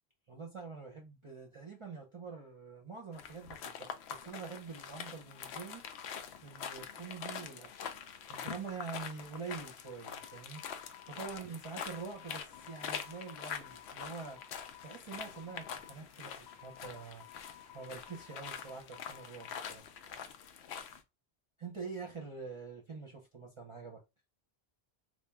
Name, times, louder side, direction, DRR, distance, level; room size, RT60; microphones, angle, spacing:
voice 1, 0.3-5.9 6.4-7.9 8.3-10.6 11.1-14.4 14.8-17.3 17.7-19.8 21.6-24.0, right 5 dB, 35° right, 0.7 m, -45 dB
sound 1, 3.1-21.0, left 7 dB, 85° left, 0.8 m, -45 dB
sound 2, 9.9-19.8, left 11 dB, 55° left, 0.7 m, -56 dB
3.4 x 2.5 x 3.4 m
omnidirectional pair, 1.0 m